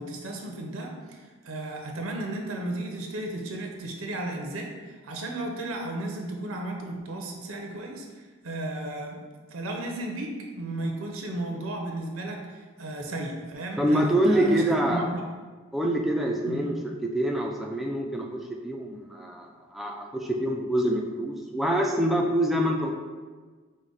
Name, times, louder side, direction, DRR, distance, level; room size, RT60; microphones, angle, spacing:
voice 1, 0.0-9.2 9.5-14.6 14.9-15.3 16.4-16.7, right 1 dB, 80° right, 2 dB, 0.6 m, -34 dB
voice 2, 13.8-15.1 15.7-16.7 17.0-22.9, right 1 dB, ahead, 0 dB, 0.3 m, -25 dB
4.9 x 2.1 x 3.8 m, 1.4 s
head